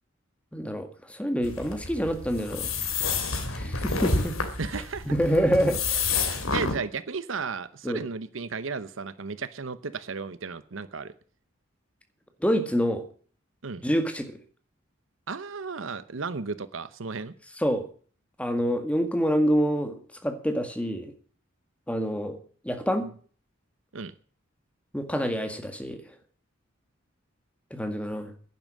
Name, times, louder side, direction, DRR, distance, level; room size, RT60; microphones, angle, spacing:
voice 1, 0.5-2.7 3.5-4.4 5.1-6.0 7.8-8.0 12.4-13.0 13.8-14.4 17.6-17.9 18.4-19.9 20.2-21.1 21.9-22.4 22.6-23.1 24.9-26.0 27.7-28.3, equal, 5° left, 7 dB, 1.8 m, -26 dB
sound 1, 1.4-6.8, left 4 dB, 80° left, 2.9 m, -29 dB
voice 2, 4.6-5.1 6.5-11.1 13.6-13.8 15.3-17.3 23.9-24.1, right 4 dB, 65° right, 15 dB, 0.8 m, -34 dB
11.0 x 10.5 x 7.6 m, 0.44 s
head